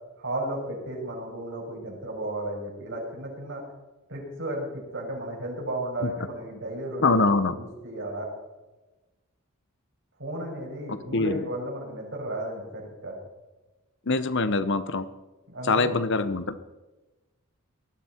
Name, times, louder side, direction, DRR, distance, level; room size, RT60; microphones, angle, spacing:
voice 1, 0.2-3.6 4.1-8.3 10.2-13.2 15.5-15.9, right 1 dB, 60° right, -2 dB, 6.1 m, -34 dB
voice 2, 7.0-7.5 11.1-11.4 14.1-15.1 15.6-16.6, left 3 dB, 60° left, 12 dB, 0.9 m, -23 dB
19.0 x 13.5 x 4.5 m, 1.1 s
head